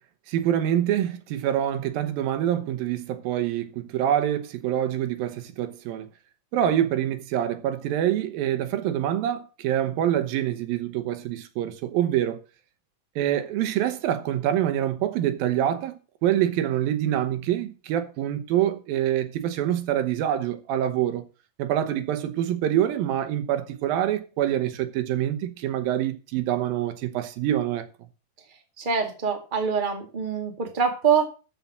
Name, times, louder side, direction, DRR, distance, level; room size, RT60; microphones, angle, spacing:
voice 1, 0.3-6.1 6.5-12.4 13.2-21.2 21.6-27.9, right 11 dB, 90° right, 2.9 m, -26 dB
voice 2, 28.8-31.3, right 6 dB, 20° right, 1.6 m, -24 dB
14.0 x 5.8 x 6.0 m
omnidirectional pair, 4.0 m